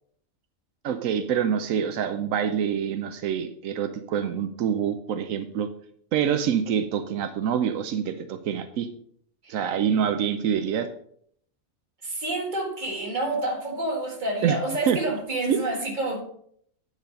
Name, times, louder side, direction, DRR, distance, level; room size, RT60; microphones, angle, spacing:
voice 1, 0.8-5.7 6.1-8.9 9.5-10.9 14.4-14.6 14.9-15.0 15.5-15.6, right 8 dB, 85° right, 9 dB, 1.0 m, -26 dB
voice 2, 12.0-16.2, right 2 dB, 35° right, 0 dB, 1.9 m, -28 dB
9.1 x 4.8 x 5.1 m, 0.65 s
omnidirectional pair, 1.3 m